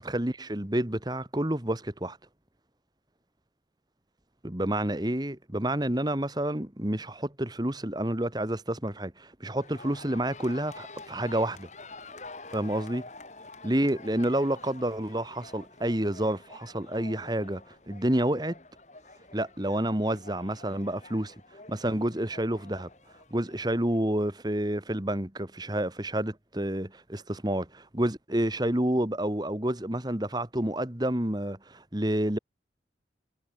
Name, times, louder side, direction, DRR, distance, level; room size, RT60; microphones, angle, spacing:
voice 1, 0.0-2.2 4.4-11.7 12.5-13.0 13.6-18.6 19.3-21.3 21.7-22.9 23.3-32.4, right 1 dB, 20° right, 1.7 m, -29 dB
sound 1, 9.6-24.0, left 3 dB, 40° left, 4.6 m, -48 dB
head